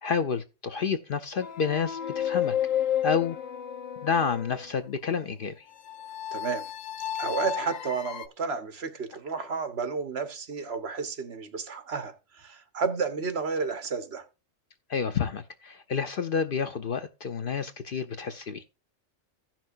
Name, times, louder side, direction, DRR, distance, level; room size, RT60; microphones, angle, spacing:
voice 1, 0.0-2.5 3.0-3.4 4.0-5.7 14.9-18.6, left 6 dB, 55° left, 0.7 m, -29 dB
sound 1, 1.4-4.7 5.9-8.3, left 10 dB, 85° left, 1.1 m, -31 dB
voice 2, 6.3-6.7 7.2-14.2, right 5 dB, 55° right, 1.3 m, -32 dB
15.5 x 6.0 x 2.5 m
omnidirectional pair, 1.3 m